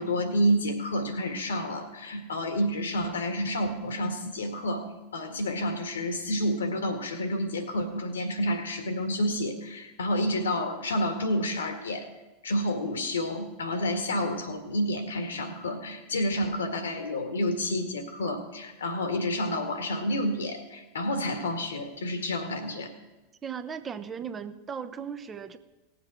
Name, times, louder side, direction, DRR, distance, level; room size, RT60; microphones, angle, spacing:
voice 1, 0.0-12.1 12.4-22.9, equal, 75° left, 7 dB, 1.9 m, -29 dB
voice 2, 23.4-25.6, right 7 dB, 25° right, 9 dB, 0.9 m, -37 dB
18.5 x 7.7 x 6.1 m, 1.1 s
figure-of-eight pair, 85°, 0 cm